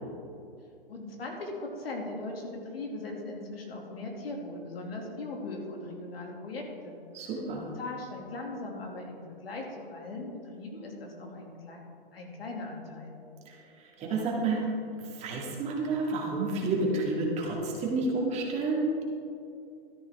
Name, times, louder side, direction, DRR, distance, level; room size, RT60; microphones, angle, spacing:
voice 1, 0.9-6.9 7.8-11.8 12.1-13.2, left 2 dB, 80° left, 0 dB, 2.6 m, -39 dB
voice 2, 7.1-7.7 13.5-14.7 15.0-19.0, right 3 dB, 20° right, -2 dB, 2.2 m, -30 dB
13.0 x 11.0 x 3.7 m, 2.7 s
hypercardioid pair, 145°, 29 cm